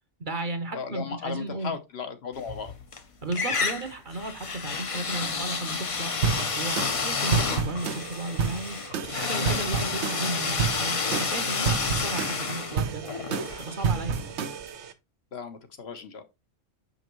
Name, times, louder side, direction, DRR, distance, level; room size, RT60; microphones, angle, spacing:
voice 1, 0.2-1.7 3.2-13.0 13.6-14.2, right 2 dB, 45° right, 1.0 m, -34 dB
voice 2, 0.7-2.7 11.7-11.8 14.2-14.3 15.3-16.2, left 5 dB, 60° left, 1.1 m, -36 dB
sound 1, 2.4-3.0 3.3-14.2, left 4 dB, 35° left, 0.6 m, -30 dB
sound 2, 6.2-14.9, right 6 dB, 70° right, 1.0 m, -30 dB
6.2 x 5.2 x 3.0 m
omnidirectional pair, 1.2 m